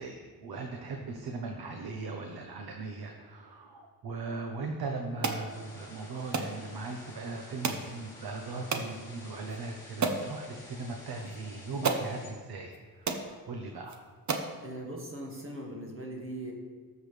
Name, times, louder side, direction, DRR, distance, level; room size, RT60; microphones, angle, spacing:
voice 1, 0.0-12.7 13.0-14.0, right 3 dB, 80° right, 3 dB, 1.1 m, -39 dB
sound 1, 5.2-5.4 6.3-6.5 7.6-7.9 8.7-8.9 9.5-9.6 10.0-10.3 11.3-11.4 11.8-12.1 12.7-12.8 13.1-13.3 13.9-14.0 14.3-14.5, right 4 dB, 50° right, 1.0 m, -30 dB
sound 2, 5.5-12.3, left 1 dB, 10° left, 3.4 m, -50 dB
voice 2, 14.6-16.5, right 1 dB, 35° right, -1 dB, 2.1 m, -40 dB
19.0 x 7.2 x 3.4 m, 1.5 s
wide cardioid pair, 155°, 37 cm